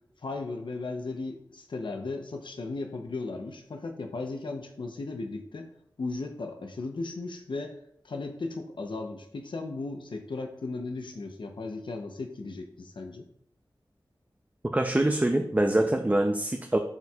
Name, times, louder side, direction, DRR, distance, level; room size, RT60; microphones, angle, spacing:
voice 1, 0.2-5.7 6.0-7.8 8.0-13.3, left 3 dB, 75° left, 4 dB, 0.7 m, -36 dB
voice 2, 14.6-16.8, right 1 dB, 20° right, 4 dB, 0.5 m, -24 dB
10.5 x 4.4 x 2.3 m, 0.68 s
wide cardioid pair, 50°, 8 cm